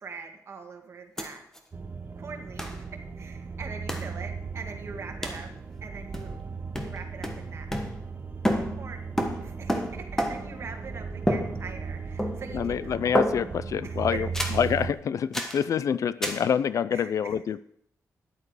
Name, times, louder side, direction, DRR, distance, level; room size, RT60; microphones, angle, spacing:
voice 1, 0.0-1.4 2.1-5.5 5.8-6.4 6.8-7.7 8.8-13.2 13.8-14.4 16.9-17.4, right 4 dB, 45° right, 4 dB, 1.8 m, -42 dB
sound 1, 1.2-1.3 1.6-1.7 2.6-2.8 3.9-4.1 5.2-5.5 6.1-6.5 6.7-8.2 8.4-10.6 11.3-11.9 12.2-12.7 13.2-13.7 14.3-14.7 15.3-15.6 16.2-16.5, equal, 5° left, 1.3 m, -30 dB
sound 2, 1.7-14.9, right 5 dB, 30° right, 1.0 m, -37 dB
voice 2, 12.5-14.3 14.5-17.6, left 8 dB, 60° left, 17 dB, 0.4 m, -26 dB
13.0 x 10.5 x 4.8 m, 0.71 s
wide cardioid pair, 170°, 6 cm